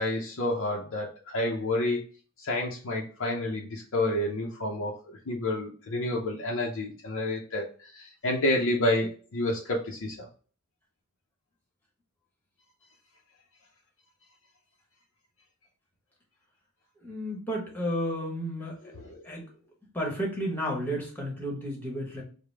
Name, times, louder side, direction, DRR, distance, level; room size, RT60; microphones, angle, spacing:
voice 1, 0.0-2.0 2.4-4.9 5.3-10.3 19.1-19.2, left 1 dB, 60° left, -2 dB, 0.6 m, -29 dB
voice 2, 17.0-18.8 19.2-19.5 19.9-22.2, equal, 10° left, -2 dB, 1.2 m, -32 dB
4.8 x 2.2 x 3.3 m, 0.40 s
head